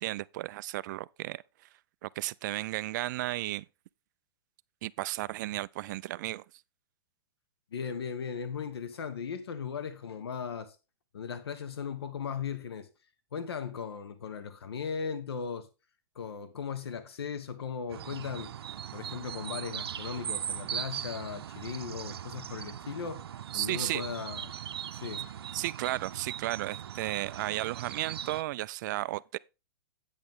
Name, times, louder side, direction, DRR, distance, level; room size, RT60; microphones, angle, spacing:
voice 1, 0.0-1.4 2.0-3.6 4.8-6.4 23.5-24.0 25.5-29.4, right 16 dB, 50° right, 0.3 m, -34 dB
voice 2, 7.7-10.8 11.1-12.9 13.3-15.7 16.1-18.5 18.9-23.2 23.5-24.5 24.9-25.3, left 6 dB, 90° left, 1.2 m, -37 dB
sound 1, 17.9-28.4, right 9 dB, 85° right, 0.7 m, -39 dB
8.9 x 8.3 x 3.6 m
hypercardioid pair, 140°, 13 cm